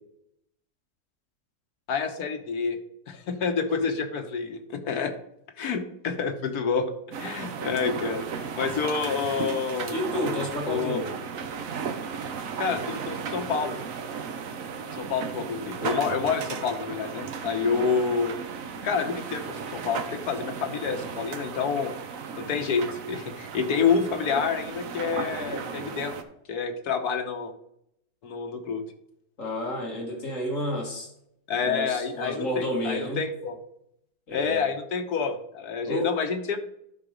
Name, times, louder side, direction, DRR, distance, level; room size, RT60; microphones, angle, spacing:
voice 1, 1.9-2.8 3.1-5.1 5.6-6.9 7.2-10.0 10.7-11.0 12.6-13.8 14.9-18.4 18.8-21.9 22.4-26.1 26.5-27.5 28.2-28.9 31.5-33.6 34.3-36.6, left 5 dB, 80° left, 6 dB, 1.6 m, -28 dB
sound 1, 7.1-26.2, right 6 dB, 65° right, 1.2 m, -35 dB
voice 2, 9.9-11.1 17.7-18.0 29.4-31.1 31.6-33.2 34.3-34.6 35.9-36.1, equal, 55° left, 0 dB, 2.4 m, -30 dB
11.0 x 5.0 x 5.1 m, 0.77 s
omnidirectional pair, 1.6 m